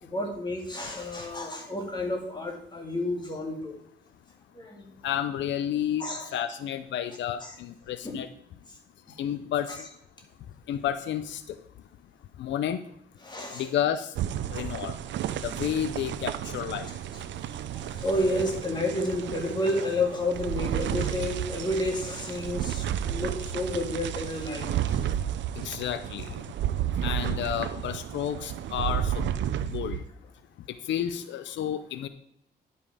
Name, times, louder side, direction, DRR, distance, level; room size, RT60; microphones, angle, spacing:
voice 1, 0.0-3.7 4.5-4.9 6.0-6.3 7.4-7.5 8.0-8.2 9.7-9.8 13.2-13.7 17.4-25.1, left 1 dB, 25° left, 1 dB, 2.3 m, -31 dB
voice 2, 5.0-6.0 6.3-8.3 9.2-9.8 10.7-11.4 12.4-12.8 13.5-14.1 14.5-15.0 15.4-16.9 25.6-26.4 27.0-29.3 29.7-30.0 30.9-32.1, left 10 dB, 90° left, 11 dB, 0.5 m, -31 dB
sound 1, 14.2-30.1, right 10 dB, 90° right, 0.5 m, -32 dB
10.5 x 5.4 x 4.8 m, 0.75 s
cardioid pair, 110°, 18 cm